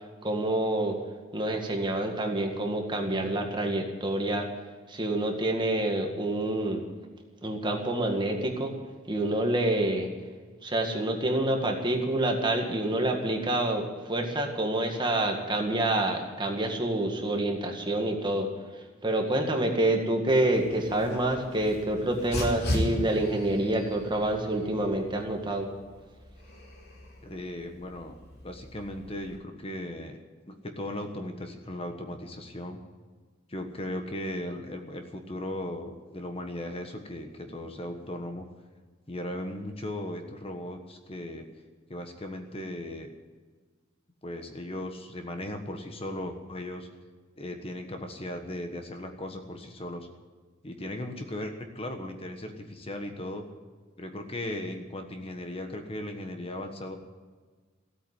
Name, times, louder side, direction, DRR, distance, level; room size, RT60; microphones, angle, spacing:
voice 1, 0.2-1.0 1.3-4.5 4.9-6.8 7.4-8.7 9.1-10.1 10.6-18.5 19.0-25.7, right 1 dB, 25° right, 2 dB, 1.9 m, -27 dB
Dog, 20.3-29.4, equal, 55° left, 3.7 m, -38 dB
voice 2, 27.2-28.2 28.4-30.2 30.5-32.8 33.5-38.5 39.1-41.5 41.9-43.1 44.2-46.9 47.4-50.1 50.6-53.5 54.0-57.0, left 1 dB, 30° left, 5 dB, 1.3 m, -37 dB
16.0 x 8.8 x 9.7 m, 1.4 s
head